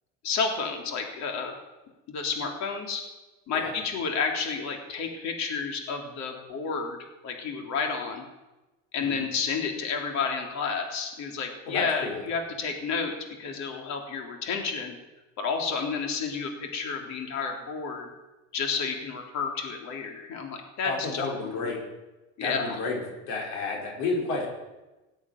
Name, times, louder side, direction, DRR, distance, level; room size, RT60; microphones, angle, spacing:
voice 1, 0.2-1.6 2.1-3.0 3.5-7.0 7.2-8.2 8.9-15.0 15.4-18.1 18.5-21.7 22.4-22.8, left 5 dB, 60° left, 2 dB, 3.6 m, -31 dB
voice 2, 11.7-12.2 20.8-21.8 22.4-23.0 23.3-24.5, left 3 dB, 85° left, -1 dB, 4.9 m, -31 dB
17.5 x 8.6 x 9.4 m, 1.1 s
cardioid pair, 120°, 31 cm